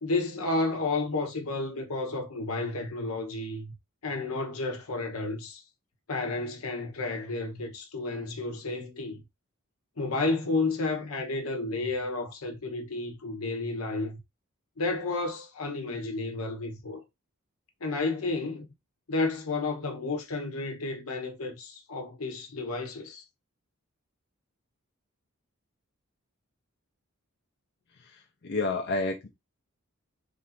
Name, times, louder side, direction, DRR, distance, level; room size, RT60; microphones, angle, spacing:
voice 1, 0.0-3.7 4.0-5.6 6.1-9.2 10.0-14.2 14.8-17.0 17.8-18.7 19.1-23.2, left 3 dB, 80° left, 0.9 m, -31 dB
voice 2, 28.0-29.3, left 3 dB, 50° left, 0.6 m, -30 dB
3.3 x 2.5 x 4.1 m
head